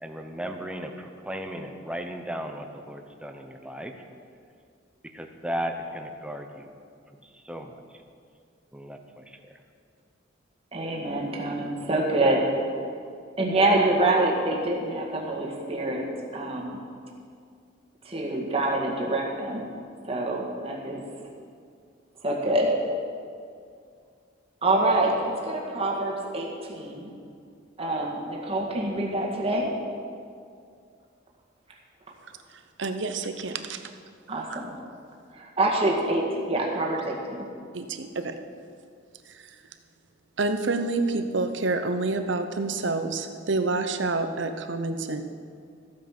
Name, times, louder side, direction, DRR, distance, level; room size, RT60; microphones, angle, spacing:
voice 1, 0.0-3.9 5.1-6.7 7.2-7.8 8.7-9.6, equal, 5° right, 4 dB, 0.7 m, -36 dB
voice 2, 10.7-12.5 13.4-16.1 16.3-16.8 18.1-19.7 20.0-21.0 22.2-22.7 24.6-27.1 27.8-29.7 34.3-34.7 35.4-37.5, right 2 dB, 30° right, -1 dB, 1.8 m, -26 dB
voice 3, 32.8-33.8 34.5-34.6 37.7-38.3 39.3-39.4 40.4-45.2, right 3 dB, 65° right, 8 dB, 0.8 m, -28 dB
14.5 x 8.5 x 6.0 m, 2.3 s
head